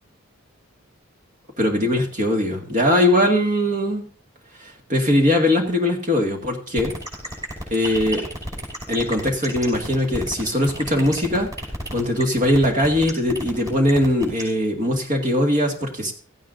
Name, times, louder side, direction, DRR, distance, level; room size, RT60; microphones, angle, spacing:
voice 1, 1.6-4.1 4.6-6.9 7.7-8.2 8.9-11.5 11.9-16.1, left 1 dB, 35° right, 2 dB, 2.1 m, -20 dB
sound 1, 6.8-14.4, equal, 15° right, 5.5 m, -31 dB
16.5 x 15.0 x 2.7 m, 0.40 s
head